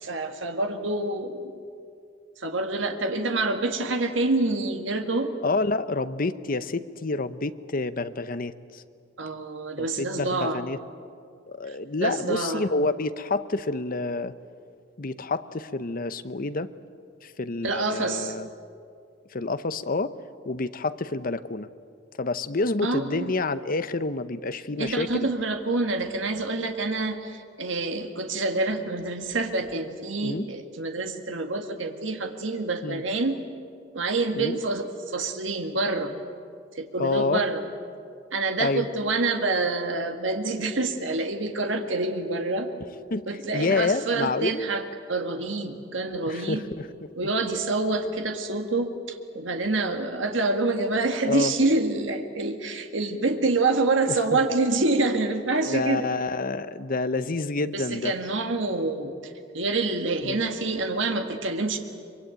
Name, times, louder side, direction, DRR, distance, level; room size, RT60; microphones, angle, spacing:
voice 1, 0.0-1.5 2.4-5.3 9.2-10.6 11.7-12.7 17.6-18.3 22.8-23.3 24.8-33.4 33.9-36.1 36.8-37.6 38.3-42.7 43.3-44.8 45.1-46.6 47.2-56.1 57.7-59.1 59.5-61.8, right 3 dB, 75° right, 5 dB, 1.8 m, -27 dB
voice 2, 5.4-8.8 9.8-10.8 11.5-14.3 15.0-16.7 17.2-18.5 19.3-20.1 20.4-21.7 22.2-25.3 30.2-30.5 32.8-33.0 34.4-34.6 37.0-37.4 38.6-38.9 43.1-43.3 43.5-44.7 46.2-46.9 51.3-51.5 54.1-54.2 55.7-58.1 60.2-60.4, left 3 dB, 45° left, 12 dB, 0.9 m, -28 dB
24.0 x 24.0 x 9.0 m, 2.4 s
head